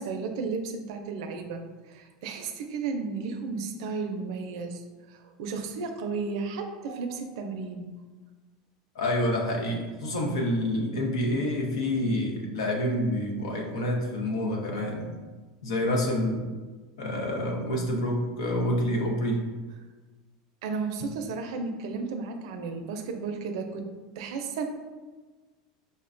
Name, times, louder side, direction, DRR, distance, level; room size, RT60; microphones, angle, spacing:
voice 1, 0.0-4.8 5.1-8.0 12.0-12.1 14.8-15.1 20.6-23.9 24.2-24.6, right 4 dB, 70° right, 5 dB, 0.4 m, -34 dB
voice 2, 8.9-15.1 15.6-16.5 17.0-19.4, left 1 dB, 90° left, 0 dB, 0.8 m, -28 dB
5.2 x 2.2 x 2.5 m, 1.3 s
supercardioid pair, 140°, 3 cm